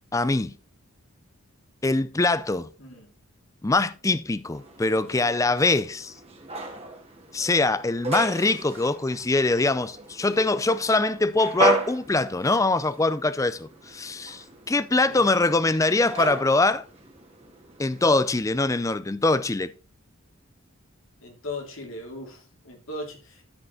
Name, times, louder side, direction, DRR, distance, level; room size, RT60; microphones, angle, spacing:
voice 1, 0.1-0.5 1.8-2.7 3.6-6.1 7.3-16.9 17.8-19.7, left 2 dB, 15° left, 0.4 m, -23 dB
sound 1, 4.5-18.3, right 3 dB, 25° right, 1.8 m, -35 dB
voice 2, 21.2-23.4, left 2 dB, 65° left, 2.9 m, -38 dB
13.0 x 5.2 x 3.9 m
head